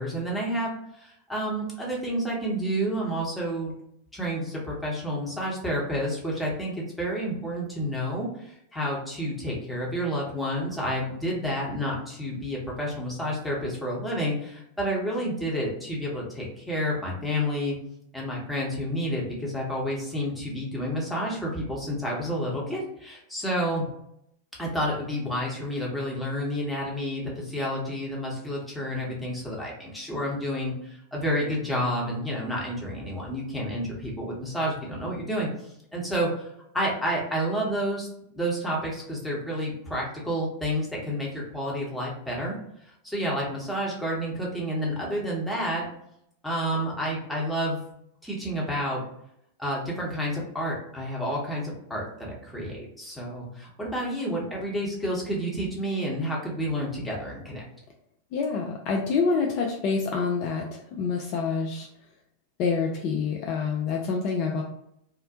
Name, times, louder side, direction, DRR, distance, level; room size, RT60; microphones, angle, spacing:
voice 1, 0.0-3.7 4.1-17.8 18.1-23.9 24.6-36.5 36.7-38.1 38.3-42.6 43.0-45.8 46.4-47.8 48.2-49.0 49.6-57.7, equal, 5° left, -4 dB, 0.9 m, -30 dB
voice 2, 58.3-60.6 60.9-61.9 62.6-64.6, left 5 dB, 40° left, 0 dB, 0.3 m, -27 dB
2.4 x 2.1 x 2.8 m, 0.76 s
figure-of-eight pair, 90°, 0 cm